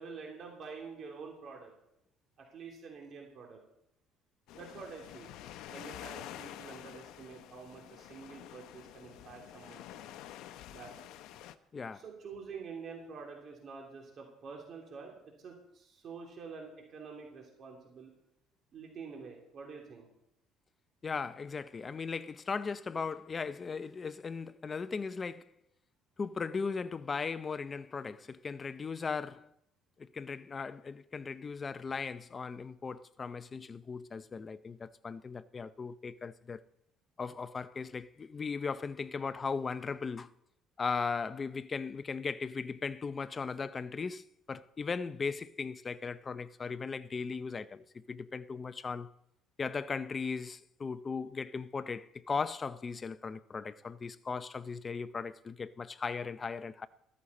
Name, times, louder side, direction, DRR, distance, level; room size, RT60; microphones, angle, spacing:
voice 1, 0.0-1.7 2.4-3.6 4.5-5.3 5.7-10.1 10.7-10.9 11.9-18.1 18.7-20.1, right 5 dB, 50° right, 3.0 m, -47 dB
sound 1, 4.5-11.6, left 12 dB, 80° left, 0.7 m, -48 dB
voice 2, 11.7-12.0 21.0-25.5 26.2-29.5 30.0-36.6 37.2-40.3 40.8-49.1 49.6-56.9, left 5 dB, 30° left, 0.5 m, -37 dB
14.5 x 14.0 x 4.2 m
cardioid pair, 115°, 0 cm